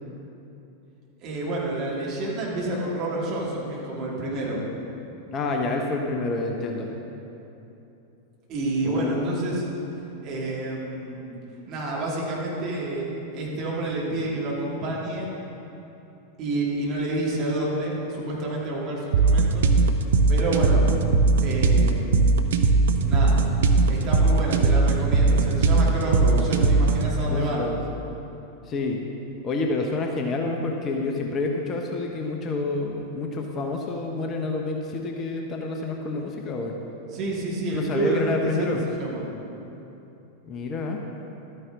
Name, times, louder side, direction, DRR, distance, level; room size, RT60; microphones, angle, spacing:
voice 1, 1.2-4.6 8.5-9.6 10.2-11.4 11.7-15.3 16.4-19.7 20.3-20.9 21.4-22.2 23.0-23.4 23.9-27.7 37.1-39.2, right 2 dB, 35° right, -4 dB, 2.5 m, -29 dB
voice 2, 5.3-6.9 8.8-9.6 27.2-27.8 28.7-29.0 29.4-36.8 37.7-38.8 40.4-41.0, left 3 dB, 30° left, 2 dB, 0.9 m, -28 dB
sound 1, 19.1-27.1, right 3 dB, 60° right, 0.6 m, -19 dB
12.5 x 9.7 x 3.7 m, 2.9 s
figure-of-eight pair, 90°, 0 cm